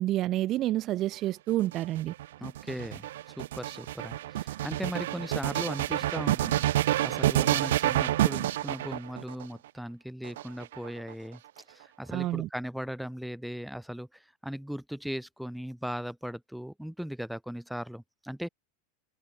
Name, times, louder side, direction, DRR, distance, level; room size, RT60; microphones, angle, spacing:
voice 1, 0.0-2.1 12.1-12.5, right 15 dB, 40° right, 2.5 m, -29 dB
sound 1, 1.5-9.4 10.2-11.1, right 14 dB, 80° right, 2.9 m, -28 dB
voice 2, 2.4-3.1 3.4-11.4 11.7-18.5, equal, ahead, 6.3 m, -38 dB
supercardioid pair, 130°, 0 cm